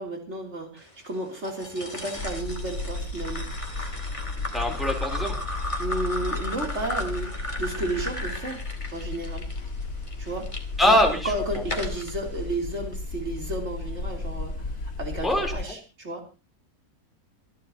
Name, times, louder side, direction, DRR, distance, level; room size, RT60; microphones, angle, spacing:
voice 1, 0.0-3.9 4.7-4.8 5.8-7.3 7.6-8.6 8.9-9.5 10.2-10.5 10.8-11.0 11.2-16.2, right 1 dB, 50° right, 2 dB, 3.7 m, -32 dB
sound 1, 1.4-10.6 11.2-12.1, left 1 dB, 20° left, 2.4 m, -36 dB
sound 2, 2.2-15.7, left 3 dB, 90° left, 2.6 m, -34 dB
voice 2, 4.5-5.4 10.8-11.6 15.2-15.5, left 1 dB, ahead, 0 dB, 3.6 m, -23 dB
27.0 x 11.0 x 3.0 m, 0.30 s
omnidirectional pair, 1.5 m